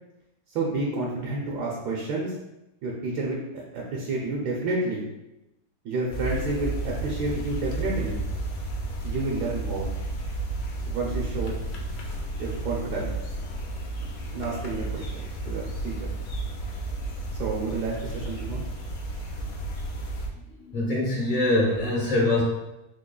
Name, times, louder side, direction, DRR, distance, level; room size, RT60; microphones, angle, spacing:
voice 1, 0.5-2.3 2.8-3.4 3.7-5.0 5.8-8.2 9.0-9.9 10.9-11.6 12.4-13.1 14.3-16.1 17.4-18.6, right 2 dB, 75° right, -3 dB, 1.1 m, -30 dB
sound 1, 6.1-20.3, right 2 dB, 70° left, 1.0 m, -32 dB
voice 2, 20.7-22.4, left 2 dB, 25° left, -5 dB, 1.0 m, -23 dB
3.7 x 3.2 x 2.3 m, 0.93 s
omnidirectional pair, 1.8 m